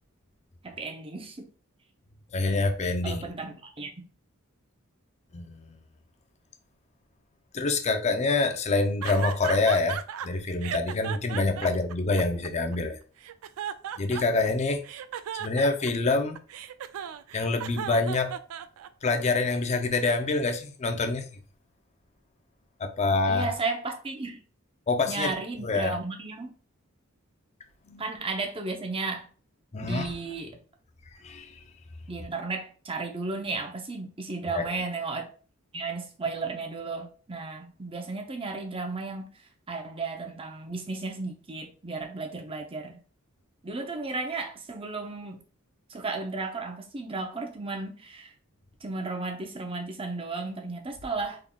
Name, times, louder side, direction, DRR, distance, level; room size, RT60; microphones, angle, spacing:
voice 1, 0.6-1.5 3.0-3.9 11.6-11.8 23.3-24.4 25.1-26.6 28.0-29.3 29.8-30.6 32.1-35.3 35.7-39.3 39.7-43.0 43.6-45.4 45.9-48.3 48.8-51.4, right 3 dB, 25° right, 0.6 m, -34 dB
voice 2, 2.3-3.2 5.3-5.6 7.5-13.0 14.0-14.8 15.4-16.4 17.3-18.3 19.0-21.3 22.8-23.5 24.9-25.4 25.6-26.0 27.9-28.1 29.7-30.1 31.2-31.5 34.5-34.7, left 3 dB, 30° left, 0.5 m, -26 dB
sound 1, 9.0-10.3 10.6-12.8 13.2-14.5 14.8-19.1, right 9 dB, 75° right, 0.3 m, -36 dB
3.8 x 3.5 x 2.2 m
head